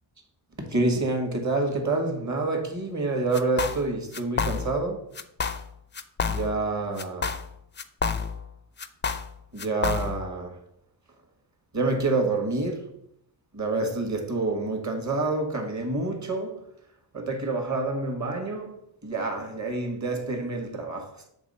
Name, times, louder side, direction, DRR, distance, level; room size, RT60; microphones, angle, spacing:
voice 1, 0.6-5.0 6.3-7.3 9.5-10.5 11.7-12.8 13.5-16.6 17.1-18.7 19.0-21.3, right 3 dB, 35° right, 1.5 m, -27 dB
sound 1, 3.3-3.9 4.1-4.9 5.2-5.7 5.9-6.7 7.0-8.5 8.8-10.3, left 5 dB, 25° left, 0.4 m, -29 dB
7.1 x 3.4 x 5.4 m
cardioid pair, 90°, 46 cm